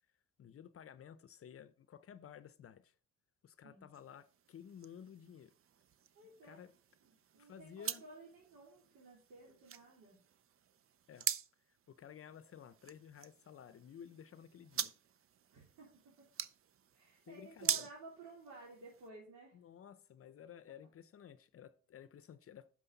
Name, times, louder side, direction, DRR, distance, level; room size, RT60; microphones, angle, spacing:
voice 1, 0.4-2.9 3.4-5.5 6.4-6.7 7.4-8.0 11.1-11.3 11.9-14.9 17.3-17.9 19.5-22.7, left 8 dB, 50° left, 0.7 m, -54 dB
sound 1, 3.9-19.1, right 9 dB, 45° right, 0.6 m, -45 dB
voice 2, 6.1-6.6 7.0-10.2 15.5-16.3 16.9-19.6, right 2 dB, 75° right, 3.5 m, -55 dB
9.9 x 6.2 x 4.0 m
cardioid pair, 90°, 30 cm